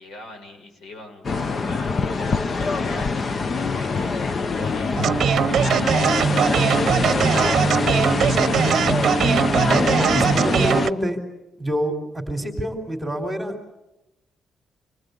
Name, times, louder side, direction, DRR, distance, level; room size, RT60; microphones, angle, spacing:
voice 1, 0.0-5.2 5.5-8.6, left 2 dB, 80° left, 3 dB, 6.1 m, -41 dB
sound 1, 1.2-10.9, left 4 dB, 35° left, 0.8 m, -24 dB
sound 2, 5.0-10.9, right 8 dB, 55° right, 0.8 m, -21 dB
voice 2, 9.7-11.2 11.6-13.7, equal, 5° right, 4 dB, 3.7 m, -26 dB
27.5 x 20.0 x 8.3 m, 0.93 s
cardioid pair, 155°, 0 cm